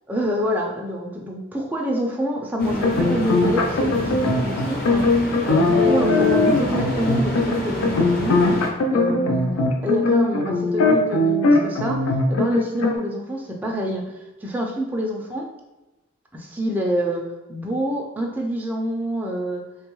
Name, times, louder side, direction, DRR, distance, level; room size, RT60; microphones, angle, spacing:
voice 1, 0.1-5.1 5.5-8.4 8.9-14.1 14.4-15.5 16.3-17.2 17.5-19.6, equal, 10° right, -1 dB, 0.3 m, -26 dB
sound 1, 2.6-13.0, left 2 dB, 85° left, 0.4 m, -20 dB
sound 2, 2.6-8.7, equal, 50° left, 0.7 m, -30 dB
3.4 x 2.2 x 2.9 m, 1.0 s
head